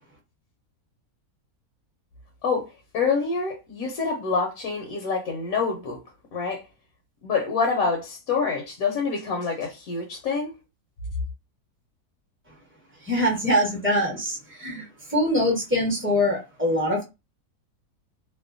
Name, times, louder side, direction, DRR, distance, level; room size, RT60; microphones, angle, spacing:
voice 1, 2.4-6.0 6.3-6.6 7.2-10.6, left 5 dB, 70° left, 1.0 m, -26 dB
voice 2, 13.0-17.0, left 1 dB, 10° right, 0.7 m, -24 dB
2.7 x 2.1 x 2.5 m
omnidirectional pair, 1.7 m